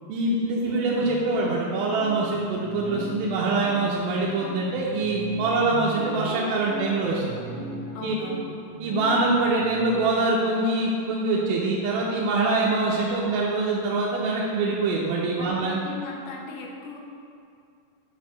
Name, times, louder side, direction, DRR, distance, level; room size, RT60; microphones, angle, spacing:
voice 1, 0.1-7.4 8.0-8.1 8.8-15.8, right 2 dB, 80° right, -5 dB, 2.4 m, -24 dB
sound 1, 0.6-9.9, right 2 dB, 55° right, 1.9 m, -38 dB
voice 2, 7.9-8.5 15.4-17.0, left 4 dB, 75° left, 0 dB, 2.0 m, -38 dB
8.1 x 6.4 x 3.1 m, 2.4 s
omnidirectional pair, 4.4 m